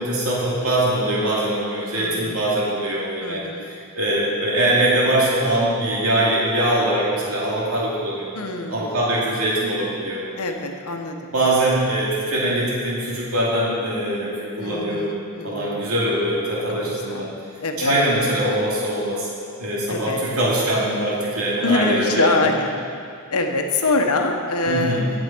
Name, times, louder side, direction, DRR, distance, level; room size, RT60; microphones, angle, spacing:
voice 1, 0.0-8.4 8.7-10.3 11.3-17.3 17.8-19.3 19.6-22.5 24.7-25.1, right 1 dB, 75° right, -6 dB, 2.4 m, -22 dB
voice 2, 2.0-2.4 3.2-3.7 8.3-8.9 10.4-11.3 14.6-15.9 17.1-17.3 17.6-18.0 19.9-20.2 21.6-22.7 23.3-25.1, left 3 dB, 80° left, 4 dB, 1.1 m, -24 dB
17.5 x 7.3 x 4.5 m, 2.3 s
head